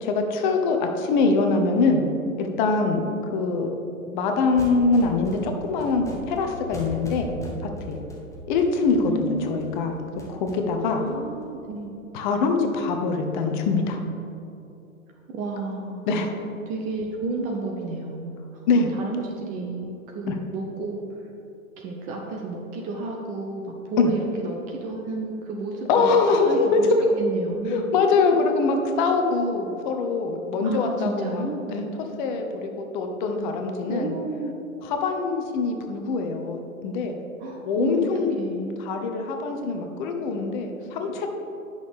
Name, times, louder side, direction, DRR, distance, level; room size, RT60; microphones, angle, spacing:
voice 1, 0.0-2.0 2.4-3.0 3.3-3.8 4.1-7.4 7.9-8.0 8.5-10.0 10.3-11.0 12.1-14.0 16.1-16.3 18.7-18.9 20.3-20.4 24.0-24.1 25.9-27.0 27.7-31.4 31.7-31.9 32.2-34.1 34.8-37.2 37.7-38.3 38.8-41.3, left 4 dB, 35° left, 4 dB, 0.9 m, -23 dB
sound 1, 4.4-11.8, equal, 5° left, 0.9 m, -40 dB
voice 2, 9.0-9.7 11.0-12.0 15.3-16.1 16.7-18.4 18.9-21.3 21.8-26.9 27.2-27.9 28.3-28.5 30.6-31.7 33.9-34.5 37.4-38.1 38.4-38.8, right 2 dB, 20° right, 0 dB, 0.6 m, -31 dB
10.5 x 6.3 x 3.5 m, 2.8 s
hypercardioid pair, 120°, 41 cm